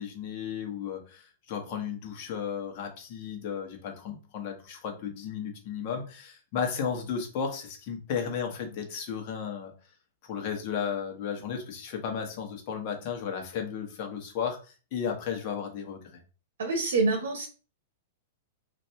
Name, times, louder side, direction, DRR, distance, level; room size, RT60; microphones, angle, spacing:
voice 1, 0.0-9.7 10.2-16.2, left 7 dB, 45° left, 3 dB, 1.0 m, -34 dB
voice 2, 16.6-17.5, right 3 dB, 85° right, 3 dB, 0.8 m, -26 dB
2.7 x 2.5 x 3.3 m, 0.35 s
hypercardioid pair, 145°, 0 cm